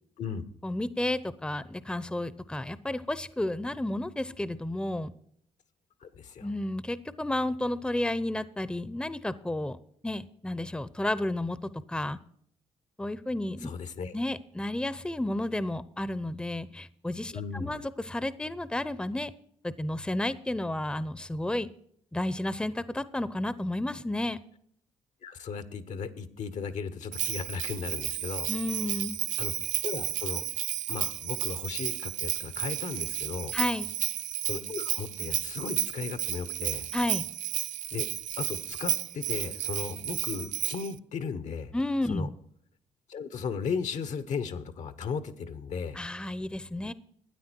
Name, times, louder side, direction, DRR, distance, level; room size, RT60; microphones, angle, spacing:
voice 1, 0.6-5.1 6.4-9.8 10.0-12.2 13.0-13.7 14.1-19.3 19.6-21.7 22.1-24.4 28.5-29.2 33.5-33.9 36.9-37.3 41.7-42.3 45.9-46.9, left 1 dB, 5° left, 17 dB, 0.7 m, -32 dB
voice 2, 6.0-6.5 13.6-14.1 17.3-17.8 25.2-28.5 29.4-29.5 29.8-30.4 30.9-33.5 34.4-36.9 37.9-38.1 38.4-41.7 42.1-42.3 43.1-46.0, left 6 dB, 65° left, 13 dB, 1.1 m, -36 dB
Bell, 27.1-40.9, right 12 dB, 70° right, 0.4 m, -32 dB
12.5 x 9.5 x 4.5 m, 0.65 s
supercardioid pair, 55°, 13 cm